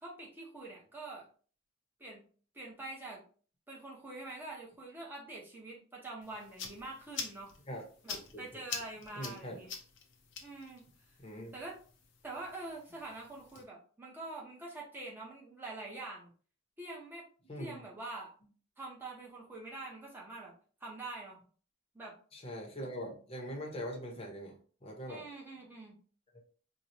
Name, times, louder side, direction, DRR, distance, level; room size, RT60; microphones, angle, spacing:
voice 1, 0.0-1.3 2.0-2.2 2.5-3.2 3.7-7.5 8.0-9.7 10.4-10.8 11.5-11.8 12.2-16.3 16.8-17.2 17.6-18.3 18.8-20.5 20.8-21.4 21.9-22.1 25.1-26.0, right 2 dB, 10° right, -3 dB, 0.9 m, -45 dB
sound 1, 6.2-13.6, left 6 dB, 55° left, 0.6 m, -47 dB
voice 2, 8.1-8.4 9.2-9.6 11.2-11.5 17.5-17.8 22.3-24.6 24.8-25.2, equal, 30° left, -1 dB, 0.9 m, -42 dB
4.4 x 2.3 x 2.7 m, 0.41 s
head